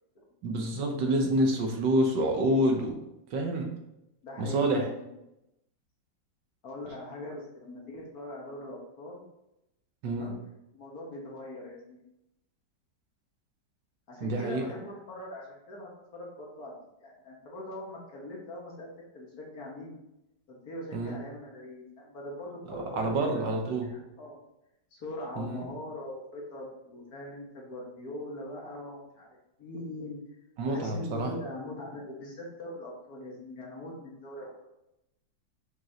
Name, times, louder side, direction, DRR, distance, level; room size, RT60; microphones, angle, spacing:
voice 1, 0.4-3.0 3.3-3.7 4.4-4.9 10.0-10.3 14.2-14.6 20.9-21.2 22.7-23.9 25.4-25.7 30.6-31.3, right 1 dB, 70° right, 2 dB, 1.7 m, -27 dB
voice 2, 4.2-5.1 6.6-9.2 10.1-10.4 10.7-12.0 14.1-16.7 17.0-20.0 20.5-24.4 24.9-29.3 29.6-30.2 30.7-34.7, left 1 dB, 55° left, -2 dB, 1.8 m, -41 dB
6.1 x 5.4 x 2.9 m, 0.88 s
omnidirectional pair, 2.1 m